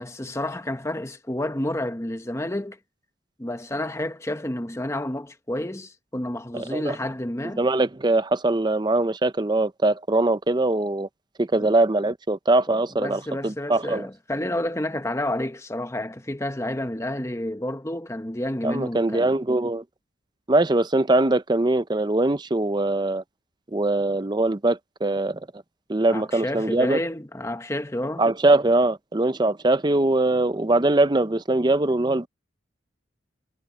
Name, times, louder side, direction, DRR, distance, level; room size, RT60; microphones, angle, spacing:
voice 1, 0.0-2.8 3.4-7.6 11.6-11.7 12.7-19.3 26.1-28.2, left 1 dB, 15° left, 1.1 m, -30 dB
voice 2, 6.5-7.0 7.6-11.1 11.4-14.1 18.6-19.8 20.5-23.2 23.7-25.5 25.9-27.0 28.2-32.3, right 2 dB, 20° right, 0.6 m, -22 dB
head